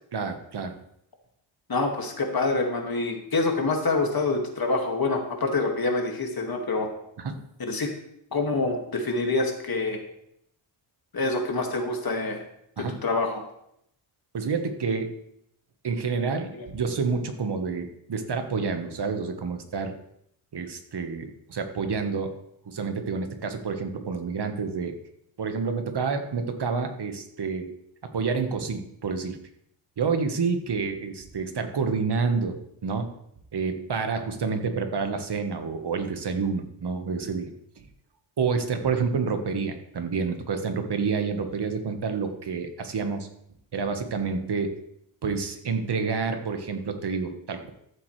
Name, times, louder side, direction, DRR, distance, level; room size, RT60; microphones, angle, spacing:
voice 1, 0.1-0.8 7.2-7.4 12.8-13.0 14.3-15.1 15.8-19.9 20.5-22.3 22.7-25.0 25.4-27.7 28.0-29.4 30.0-33.1 33.5-37.5 38.4-43.3 43.7-44.7 45.2-47.7, right 5 dB, 55° right, 6 dB, 1.5 m, -28 dB
voice 2, 1.7-6.9 7.6-7.9 8.3-10.0 11.1-12.4 12.8-13.4 16.5-16.7, left 3 dB, 45° left, 2 dB, 2.2 m, -26 dB
14.0 x 7.6 x 3.3 m, 0.75 s
cardioid pair, 80°, 49 cm